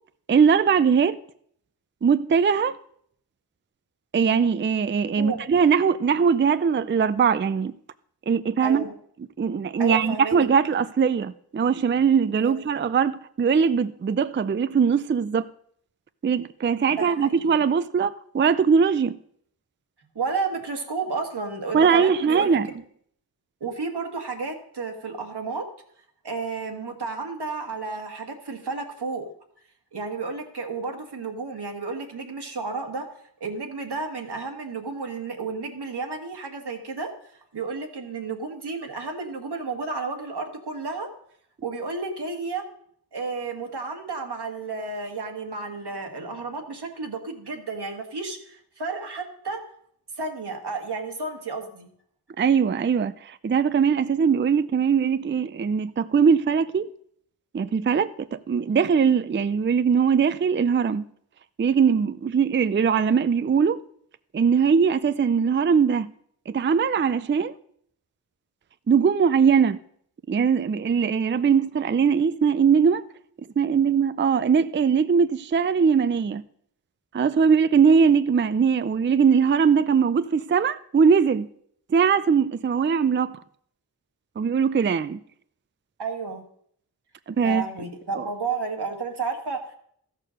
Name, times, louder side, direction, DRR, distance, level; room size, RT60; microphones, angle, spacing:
voice 1, 0.3-1.2 2.0-2.8 4.1-7.7 8.3-8.8 9.4-15.5 16.2-19.2 21.7-22.7 52.4-56.9 57.5-61.0 61.6-63.8 64.3-66.1 66.5-67.5 68.9-69.8 70.3-73.0 73.6-76.4 77.1-81.5 81.9-83.3 84.4-85.2 87.3-87.6 88.1-88.3, right 6 dB, 30° right, 0.4 m, -21 dB
voice 2, 5.2-5.5 8.6-8.9 9.8-10.4 12.4-12.6 16.9-17.3 20.2-22.6 23.6-25.7 26.2-29.3 29.9-33.1 33.4-37.1 37.5-41.1 41.6-42.6 43.1-49.6 50.2-51.9 86.0-86.4 87.4-89.8, right 4 dB, 85° right, 1.9 m, -32 dB
14.0 x 6.7 x 6.4 m
wide cardioid pair, 100°, 39 cm